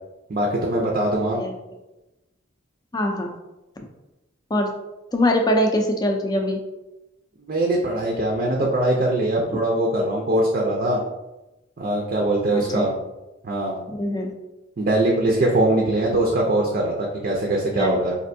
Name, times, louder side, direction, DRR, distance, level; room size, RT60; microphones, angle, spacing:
voice 1, 0.3-1.4 7.5-11.0 11.8-13.0 13.4-13.8 14.8-18.2, right 1 dB, 45° right, -1 dB, 0.5 m, -22 dB
voice 2, 2.9-3.4 4.5-4.7 5.1-6.6 9.5-9.6 12.5-12.8 14.0-14.3 17.7-18.0, left 1 dB, 20° left, 3 dB, 0.4 m, -22 dB
4.2 x 2.6 x 2.6 m, 0.99 s
head